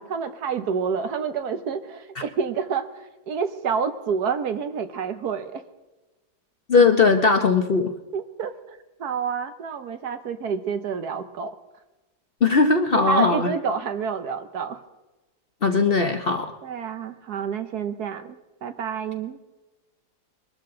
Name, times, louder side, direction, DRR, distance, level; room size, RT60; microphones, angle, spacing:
voice 1, 0.0-5.6 8.1-11.5 12.9-14.8 16.6-19.4, right 6 dB, 70° right, 9 dB, 1.5 m, -29 dB
voice 2, 6.7-7.9 12.4-13.5 15.6-16.5, left 4 dB, 45° left, 5 dB, 0.9 m, -19 dB
22.5 x 12.5 x 3.9 m, 1.1 s
omnidirectional pair, 1.8 m